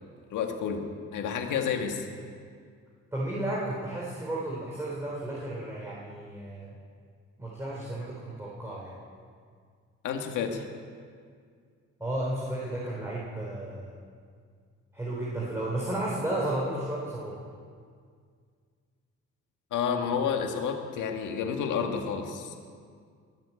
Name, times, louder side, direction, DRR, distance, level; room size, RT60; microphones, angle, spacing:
voice 1, 0.3-0.8 1.1-2.1 10.0-10.6 19.7-22.6, left 7 dB, 85° left, 4 dB, 1.8 m, -30 dB
voice 2, 3.1-6.8 7.4-8.9 12.0-13.9 14.9-17.4, right 1 dB, 10° right, -6 dB, 3.9 m, -33 dB
21.5 x 7.7 x 8.4 m, 2.1 s
cardioid pair, 90°, 30 cm